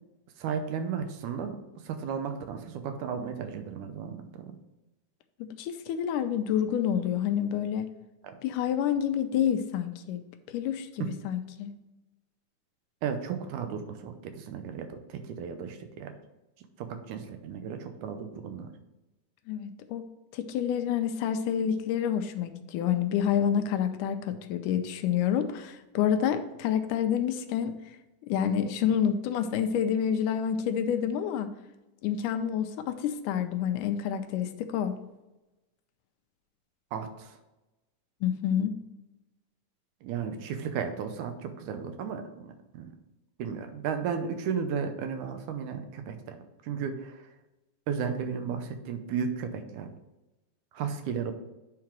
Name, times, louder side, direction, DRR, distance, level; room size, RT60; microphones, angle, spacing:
voice 1, 0.4-1.6 1.8-4.6 8.2-8.4 11.0-11.1 13.0-16.1 16.8-18.7 28.8-28.9 36.9-37.4 40.0-42.9 43.4-47.3 47.9-49.9 50.7-51.3, right 6 dB, 80° right, 7 dB, 2.2 m, -34 dB
voice 2, 5.4-7.9 8.4-10.2 10.5-11.7 19.5-20.0 20.3-27.7 28.3-31.5 32.0-34.9 38.2-38.8, left 9 dB, 85° left, 8 dB, 2.2 m, -28 dB
9.4 x 3.8 x 4.5 m, 1.0 s
omnidirectional pair, 3.6 m